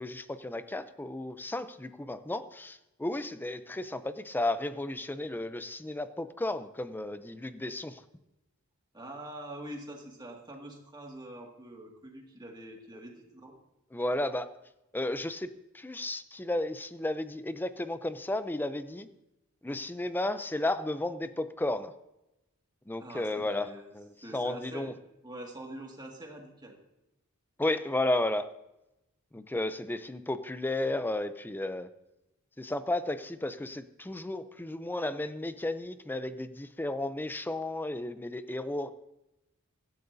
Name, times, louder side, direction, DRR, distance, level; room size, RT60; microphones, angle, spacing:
voice 1, 0.0-8.0 13.9-14.5 14.9-19.1 19.6-21.9 22.9-24.9 27.6-28.5 29.3-31.9 32.6-38.9, left 1 dB, 10° left, 12 dB, 0.5 m, -33 dB
voice 2, 8.9-13.6 23.0-23.9 24.2-25.0 25.2-26.8, right 1 dB, 20° right, 1 dB, 2.0 m, -44 dB
16.0 x 12.0 x 2.7 m, 0.92 s
head